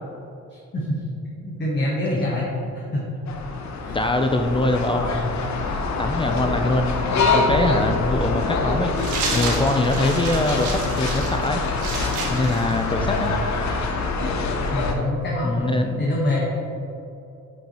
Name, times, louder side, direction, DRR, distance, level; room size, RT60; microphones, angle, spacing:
voice 1, 0.5-1.0 1.4-2.5 2.7-3.0 3.8-4.0 12.9-13.2 14.7-16.5, left 1 dB, 35° left, -4 dB, 1.3 m, -25 dB
sound 1, 3.3-14.9, left 3 dB, 65° left, 0.8 m, -25 dB
voice 2, 3.9-5.4 5.7-11.6 12.3-13.4 15.4-16.0, left 2 dB, 15° left, 5 dB, 0.4 m, -23 dB
sound 2, 9.0-13.4, right 4 dB, 75° right, 1.4 m, -31 dB
7.5 x 5.3 x 3.0 m, 2.7 s
cardioid pair, 90°, 30 cm